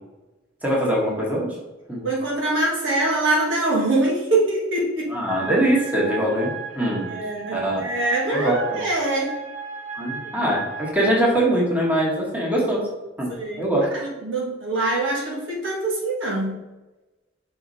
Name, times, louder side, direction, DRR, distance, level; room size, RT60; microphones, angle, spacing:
voice 1, 0.6-1.5 1.9-2.0 5.1-7.1 7.5-7.8 8.3-8.8 9.9-12.8 13.2-13.3 13.6-13.9, right 1 dB, 10° right, -4 dB, 1.5 m, -22 dB
voice 2, 2.0-5.1 7.0-9.3 10.2-10.4 13.3-13.6 13.9-16.6, right 2 dB, 70° right, -2 dB, 1.6 m, -24 dB
sound 1, 5.3-10.9, right 6 dB, 35° right, 0.7 m, -35 dB
5.8 x 4.2 x 4.1 m, 1.1 s
head